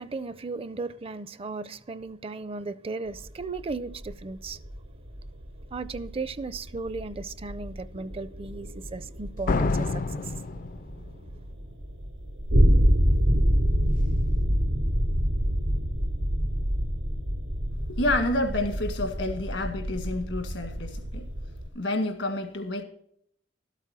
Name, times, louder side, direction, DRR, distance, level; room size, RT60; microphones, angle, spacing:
voice 1, 0.0-4.6 5.7-10.2, right 3 dB, 30° right, 0.5 m, -36 dB
sound 1, 3.1-21.7, equal, 85° right, 3.2 m, -27 dB
Slam, 9.5-11.4, left 3 dB, 45° left, 0.4 m, -28 dB
voice 2, 17.9-21.3 21.8-22.8, left 1 dB, 80° left, 1.9 m, -29 dB
12.5 x 8.3 x 6.0 m
head